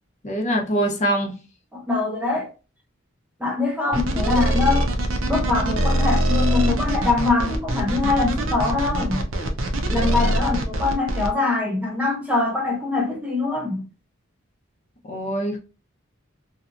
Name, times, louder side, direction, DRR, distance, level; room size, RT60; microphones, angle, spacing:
voice 1, 0.2-1.3 15.1-15.6, right 1 dB, 35° left, 0.7 m, -23 dB
voice 2, 1.7-2.5 3.4-4.9 5.3-9.3 9.9-13.9, left 3 dB, 5° right, 0.5 m, -23 dB
sound 1, 3.9-11.3, right 1 dB, 80° right, 0.5 m, -23 dB
2.8 x 2.4 x 2.4 m
head